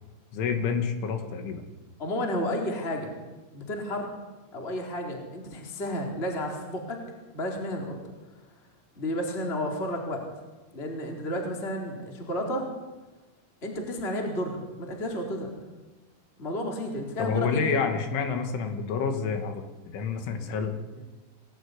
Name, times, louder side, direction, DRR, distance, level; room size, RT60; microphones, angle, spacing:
voice 1, 0.3-1.6 17.2-20.7, left 6 dB, 75° left, 6 dB, 4.8 m, -28 dB
voice 2, 2.0-3.1 3.5-4.1 4.5-7.0 7.3-7.9 9.0-10.2 10.7-12.7 13.6-15.5 16.4-17.8 21.0-21.1, left 1 dB, 15° left, 1 dB, 3.7 m, -32 dB
26.0 x 18.5 x 10.0 m, 1.2 s
omnidirectional pair, 5.6 m